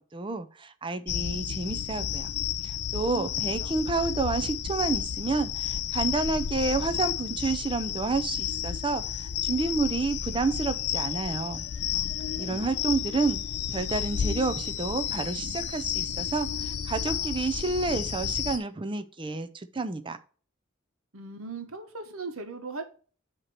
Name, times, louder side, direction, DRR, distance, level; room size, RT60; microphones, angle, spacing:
voice 1, 0.0-2.3 2.6-11.7 12.4-13.4 13.7-20.2, right 3 dB, 25° right, 10 dB, 0.5 m, -30 dB
sound 1, 1.1-18.6, left 10 dB, 50° left, 0.4 m, -32 dB
sound 2, 7.3-18.6, right 3 dB, 40° right, 1.4 m, -49 dB
voice 2, 11.9-12.6 21.1-22.8, right 3 dB, 75° right, 6 dB, 1.2 m, -39 dB
8.0 x 3.0 x 5.9 m, 0.41 s
head